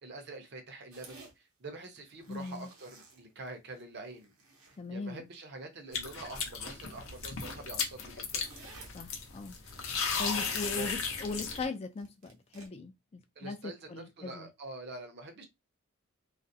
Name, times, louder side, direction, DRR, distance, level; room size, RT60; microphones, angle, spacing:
voice 1, 0.0-1.3 1.6-4.3 4.9-8.4 10.7-10.9 13.4-15.5, right 2 dB, 50° right, 0.6 m, -45 dB
sound 1, 0.9-1.3 2.0-3.8 4.1-4.8 5.3-5.6 6.7-7.3 7.6-7.7 8.0-9.0 9.5-10.7 12.0-12.7, right 3 dB, 80° right, 0.8 m, -55 dB
voice 2, 2.3-2.7 4.8-5.3 8.9-9.6 10.2-14.5, left 3 dB, 30° left, 0.3 m, -39 dB
sound 2, 5.9-11.7, left 5 dB, 70° left, 0.6 m, -36 dB
2.4 x 2.0 x 2.6 m
head